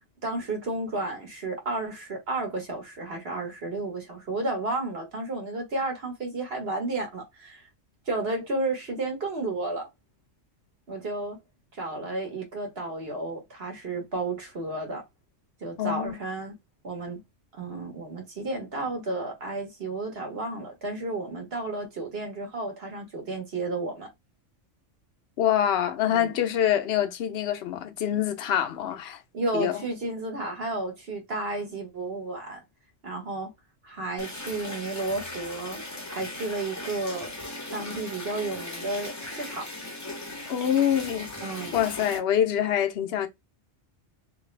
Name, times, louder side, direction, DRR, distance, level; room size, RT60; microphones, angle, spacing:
voice 1, 0.2-7.6 8.1-9.9 10.9-11.4 11.8-15.0 15.6-16.6 16.8-17.2 17.5-24.1 26.1-26.3 29.3-32.6 33.0-33.5 33.8-35.8 36.1-37.3 37.7-39.7 41.4-41.8, right 2 dB, 50° right, 1.6 m, -32 dB
voice 2, 15.8-16.2 25.4-29.2 29.5-29.8 40.5-41.3 41.7-43.3, left 10 dB, 60° left, 0.9 m, -25 dB
sound 1, 34.2-42.2, left 2 dB, 15° left, 0.7 m, -38 dB
3.2 x 2.9 x 3.3 m
omnidirectional pair, 1.3 m